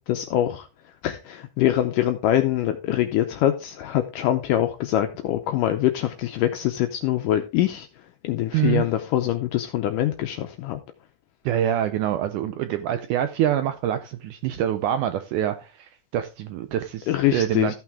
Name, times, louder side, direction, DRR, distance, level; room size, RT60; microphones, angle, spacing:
voice 1, 0.1-0.7 1.0-7.9 8.2-10.8 17.1-17.7, left 12 dB, 75° left, 2.0 m, -24 dB
voice 2, 8.5-8.9 11.5-17.7, right 11 dB, 90° right, 1.8 m, -25 dB
14.0 x 5.9 x 3.6 m
omnidirectional pair, 4.3 m